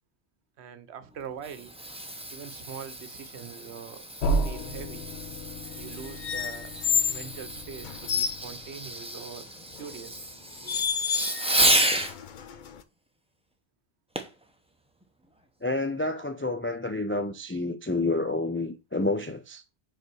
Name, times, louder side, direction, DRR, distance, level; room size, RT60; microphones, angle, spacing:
voice 1, 0.6-1.7 2.3-4.0 4.3-5.1 5.7-6.7 7.1-10.2, right 7 dB, 80° right, 1.0 m, -43 dB
Fireworks, 1.2-12.2 14.2-14.4 15.0-15.1, right 1 dB, 5° right, 0.8 m, -31 dB
sound 1, 4.2-8.9, right 2 dB, 75° left, 1.2 m, -33 dB
sound 2, 6.2-7.3 7.8-8.4 9.8-10.0 10.7-11.5 11.9-12.8, left 7 dB, 55° left, 0.7 m, -29 dB
voice 2, 15.6-19.6, left 2 dB, 20° left, 0.3 m, -29 dB
5.4 x 4.1 x 6.1 m
omnidirectional pair, 1.1 m